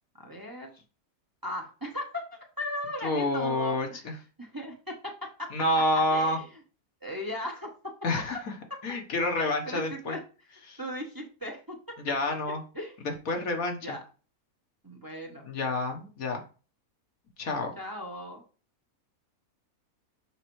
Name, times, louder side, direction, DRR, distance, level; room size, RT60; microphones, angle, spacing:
voice 1, 0.2-0.8 1.4-4.1 4.4-5.5 6.1-6.5 7.0-7.7 9.4-10.2 10.8-11.8 12.7-13.0 13.8-14.0 14.8-15.5 17.8-18.4, left 1 dB, 15° right, 1 dB, 1.0 m, -37 dB
voice 2, 3.0-4.1 5.5-6.4 8.0-8.4 8.8-10.2 10.7-10.8 12.1-12.6 13.3-13.9 15.4-16.4 17.4-17.7, left 1 dB, 70° left, 3 dB, 1.7 m, -28 dB
6.6 x 5.6 x 3.2 m, 0.35 s
omnidirectional pair, 1.5 m